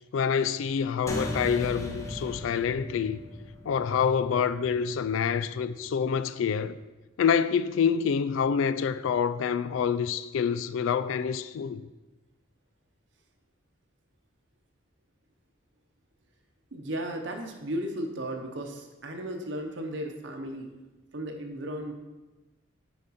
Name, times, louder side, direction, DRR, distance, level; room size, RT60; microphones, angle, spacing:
voice 1, 0.1-3.2 3.7-6.8 7.2-11.8, left 7 dB, 80° left, 0.3 m, -27 dB
sound 1, 1.1-5.9, left 1 dB, 15° left, 0.8 m, -38 dB
voice 2, 16.7-20.7 21.1-21.9, right 1 dB, 65° right, 0.9 m, -35 dB
8.6 x 5.1 x 4.1 m
head